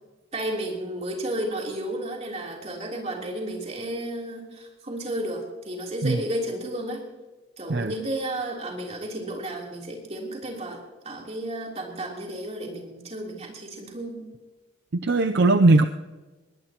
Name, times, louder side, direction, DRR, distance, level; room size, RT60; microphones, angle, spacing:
voice 1, 0.3-7.0 7.6-14.3, right 1 dB, 35° right, -1 dB, 3.4 m, -32 dB
voice 2, 15.0-15.8, right 2 dB, 60° right, 8 dB, 0.5 m, -18 dB
20.5 x 19.5 x 3.0 m, 1.2 s
head